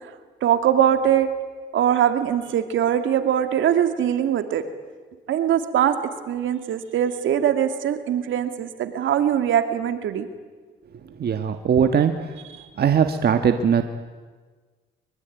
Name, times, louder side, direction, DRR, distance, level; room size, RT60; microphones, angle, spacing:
voice 1, 0.4-1.3 1.7-4.6 5.3-5.9 6.3-10.3, right 10 dB, 75° right, 8 dB, 2.3 m, -21 dB
voice 2, 11.2-12.3 12.8-13.8, right 7 dB, 55° right, 7 dB, 1.5 m, -20 dB
24.0 x 23.5 x 9.3 m, 1.4 s
cardioid pair, 90°, 20 cm